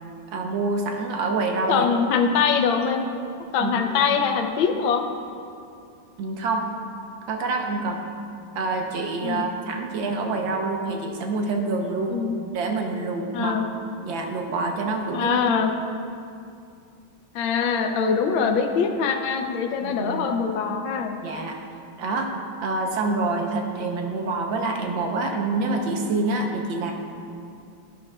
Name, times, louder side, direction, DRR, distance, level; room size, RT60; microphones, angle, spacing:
voice 1, 0.3-1.9 3.6-4.0 6.2-6.6 7.3-8.0 8.5-12.2 12.5-13.5 14.0-15.3 19.8-20.3 21.2-21.6 22.0-22.3 22.6-26.9, right 3 dB, 80° right, 2 dB, 1.6 m, -26 dB
voice 2, 1.7-3.0 3.5-5.1 9.2-9.5 12.1-12.3 13.3-13.6 15.1-15.7 17.3-21.2, left 6 dB, 85° left, 5 dB, 1.5 m, -23 dB
11.0 x 11.0 x 2.3 m, 2.5 s
omnidirectional pair, 2.1 m